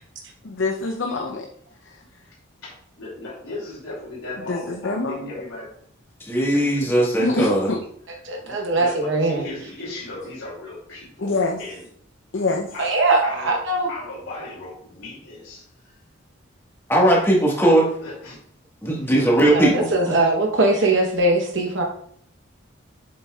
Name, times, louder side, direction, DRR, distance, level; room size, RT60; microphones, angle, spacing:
voice 1, 0.5-1.4 4.5-4.6 4.8-5.2 7.2-7.8 11.2-11.5 12.3-12.7, left 3 dB, 65° left, 2 dB, 0.6 m, -24 dB
voice 2, 2.6-5.7 7.1-7.8 8.1-11.9 12.3-13.6 13.9-16.0 18.0-18.4 20.7-21.0, left 2 dB, 80° left, -6 dB, 2.9 m, -37 dB
voice 3, 6.3-7.7 16.9-17.9 18.8-19.9, right 1 dB, 10° left, -3 dB, 1.5 m, -18 dB
voice 4, 8.2-9.4 12.8-13.9 19.5-21.8, right 2 dB, 65° right, 1 dB, 1.0 m, -21 dB
7.4 x 7.0 x 2.4 m, 0.63 s
head